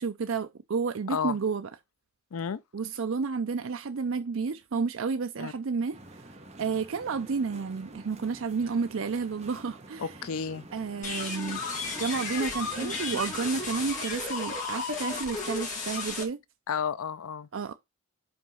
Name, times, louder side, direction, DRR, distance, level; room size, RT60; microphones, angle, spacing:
voice 1, 0.0-1.7 2.7-6.2 6.6-10.2 10.7-11.6 12.0-16.4 17.5-17.7, right 5 dB, 60° right, 0.5 m, -31 dB
sound 1, 5.9-13.9, right 2 dB, 30° right, 1.2 m, -48 dB
voice 2, 10.0-10.7 16.7-17.5, left 6 dB, 75° left, 0.5 m, -32 dB
sound 2, 11.0-16.2, left 4 dB, 35° left, 2.3 m, -34 dB
5.2 x 4.7 x 5.5 m
head